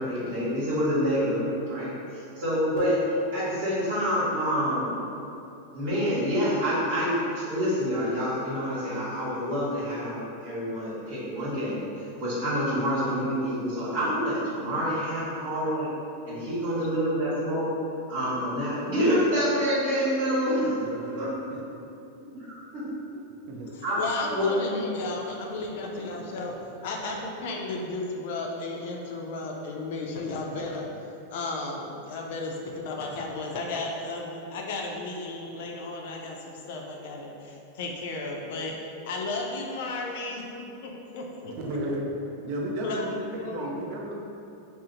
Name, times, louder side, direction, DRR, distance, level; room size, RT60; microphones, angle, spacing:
voice 1, 0.0-1.9 2.4-3.0 3.3-4.9 5.7-11.8 12.1-15.9 16.2-17.7 18.1-20.8 21.2-21.3 22.4-22.8 23.8-24.0 24.3-24.8, equal, 70° right, -11 dB, 1.2 m, -27 dB
voice 2, 20.8-21.6 23.5-23.7 41.4-42.0 42.4-44.1, right 1 dB, 50° right, -1 dB, 0.5 m, -34 dB
voice 3, 24.0-26.6 26.8-30.9 31.3-38.7 39.0-40.4 40.8-41.5 42.8-43.8, left 3 dB, 65° left, 1 dB, 0.4 m, -34 dB
2.7 x 2.0 x 3.8 m, 2.8 s
supercardioid pair, 140°, 0 cm